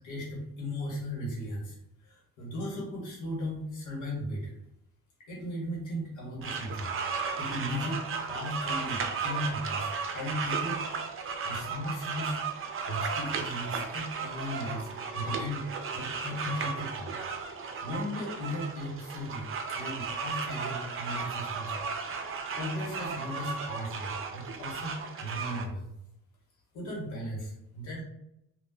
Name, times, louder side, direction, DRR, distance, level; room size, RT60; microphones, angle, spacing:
voice 1, 0.0-1.8 2.0-4.5 5.3-6.9 7.4-10.8 11.4-12.4 12.9-15.7 15.9-17.2 17.8-19.5 19.7-21.9 22.5-25.9 26.7-28.0, left 1 dB, 80° left, -2 dB, 1.4 m, -36 dB
sound 1, 6.4-25.6, right 5 dB, 45° right, 0.6 m, -35 dB
3.7 x 2.7 x 2.7 m, 0.82 s
cardioid pair, 90°, 30 cm